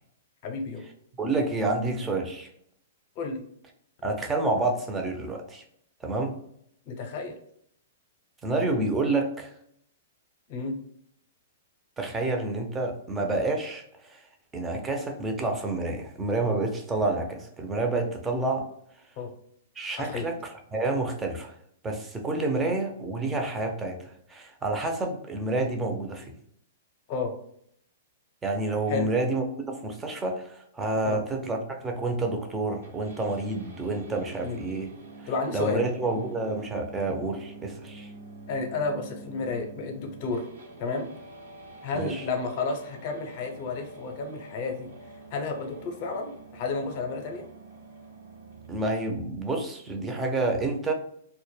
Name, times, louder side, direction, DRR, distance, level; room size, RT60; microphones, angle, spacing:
voice 1, 0.4-0.8 3.2-3.4 6.9-7.4 10.5-10.8 19.2-19.3 20.0-20.2 27.1-27.3 28.9-29.1 31.0-31.2 34.4-34.6 35.3-35.9 38.5-40.4 40.8-41.1 41.8-44.9 45.3-47.4, left 4 dB, 45° left, 4 dB, 0.6 m, -31 dB
voice 2, 1.2-2.5 4.0-5.6 6.0-6.4 8.4-9.5 12.0-14.2 14.5-18.7 19.8-20.3 20.7-21.5 21.8-26.3 28.4-34.9 35.5-38.1 41.9-42.3 48.7-50.9, right 2 dB, 15° right, 2 dB, 0.5 m, -29 dB
sound 1, 32.8-48.8, right 2 dB, 80° right, 1.0 m, -47 dB
2.1 x 2.1 x 3.1 m, 0.69 s
hypercardioid pair, 120°, 0 cm